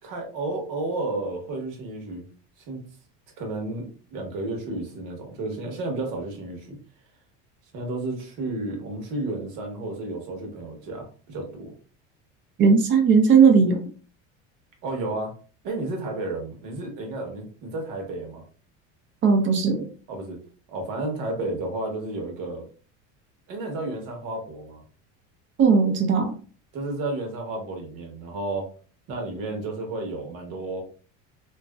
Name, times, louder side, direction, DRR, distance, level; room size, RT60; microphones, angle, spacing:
voice 1, 0.0-2.2 2.6-2.8 3.4-6.8 7.7-11.7 14.8-15.3 15.6-18.4 20.1-20.4 20.7-22.7 23.5-24.8 26.7-28.7 29.1-30.8, right 2 dB, 65° right, 2 dB, 1.2 m, -32 dB
voice 2, 12.6-13.8 19.2-19.8 25.6-26.3, right 5 dB, 35° right, 5 dB, 0.6 m, -17 dB
2.9 x 2.6 x 2.3 m, 0.38 s
cardioid pair, 150°, 36 cm